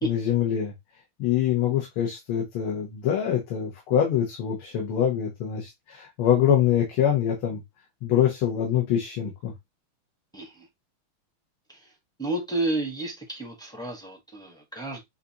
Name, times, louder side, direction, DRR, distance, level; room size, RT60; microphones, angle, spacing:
voice 1, 0.0-0.7 1.2-7.6 8.0-9.5, left 9 dB, 80° left, 1.9 m, -24 dB
voice 2, 10.3-10.7 11.7-11.9 12.2-15.0, right 2 dB, 5° left, 0.6 m, -31 dB
6.5 x 2.6 x 2.8 m
omnidirectional pair, 2.3 m